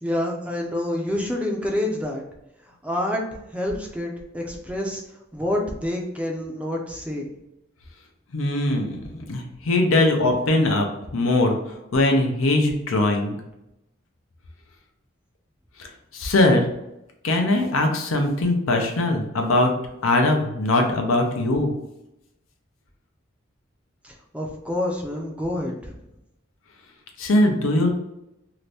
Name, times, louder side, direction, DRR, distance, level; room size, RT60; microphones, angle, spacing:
voice 1, 0.0-2.2 2.8-3.2 3.5-5.0 5.3-7.3 24.0-26.0, left 1 dB, 5° right, 0 dB, 0.4 m, -27 dB
voice 2, 8.3-11.6 11.9-13.4 15.8-16.7 17.2-19.7 20.0-21.7 27.2-28.0, left 2 dB, 90° left, 3 dB, 0.6 m, -21 dB
2.8 x 2.6 x 3.3 m, 0.88 s
head